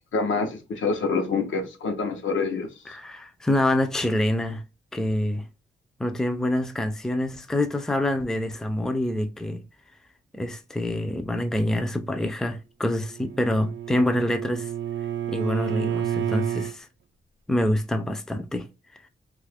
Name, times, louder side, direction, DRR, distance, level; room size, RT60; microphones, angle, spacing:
voice 1, 0.1-2.7, left 4 dB, 80° left, 0.7 m, -26 dB
voice 2, 2.9-4.6 4.9-5.5 6.0-9.6 10.3-14.7 15.3-16.9 17.5-18.7, left 1 dB, 5° left, 0.4 m, -26 dB
Bowed string instrument, 13.0-16.7, right 10 dB, 70° right, 0.4 m, -30 dB
2.8 x 2.4 x 3.3 m
wide cardioid pair, 115°, 20 cm